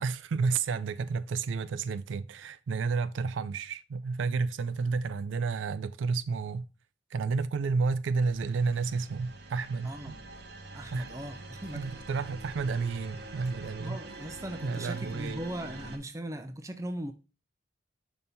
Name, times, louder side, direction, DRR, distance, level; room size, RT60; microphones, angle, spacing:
voice 1, 0.0-6.7 7.1-9.9 10.9-11.1 11.7-14.0 14.6-15.4, right 4 dB, 80° right, 0.4 m, -31 dB
sound 1, 8.2-16.0, right 2 dB, 60° right, 0.9 m, -45 dB
voice 2, 9.8-10.4 10.7-12.0 13.8-17.1, right 1 dB, 15° right, 0.5 m, -39 dB
5.4 x 4.1 x 4.3 m
head